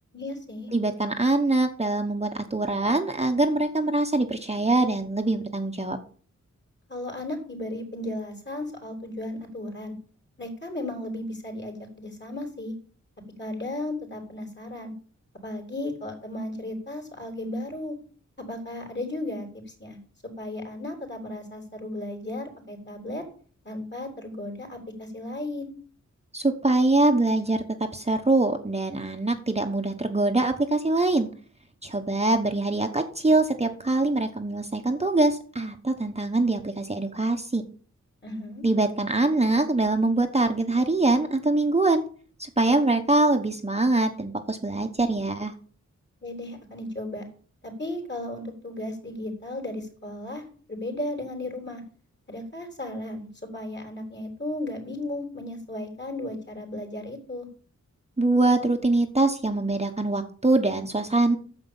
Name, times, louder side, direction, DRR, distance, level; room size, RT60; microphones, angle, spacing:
voice 1, 0.1-0.7 6.9-9.9 10.4-12.7 13.4-14.9 15.4-18.0 18.4-20.0 20.4-23.2 23.6-25.7 38.2-38.6 46.2-47.2 47.6-51.8 52.3-57.5, left 1 dB, 35° left, 4 dB, 4.0 m, -35 dB
voice 2, 0.7-6.0 26.3-27.6 27.9-31.3 31.8-37.6 38.6-42.0 42.4-45.5 58.2-61.4, right 2 dB, 20° right, 4 dB, 1.1 m, -23 dB
9.6 x 7.0 x 7.1 m, 0.43 s
wide cardioid pair, 90°, 30 cm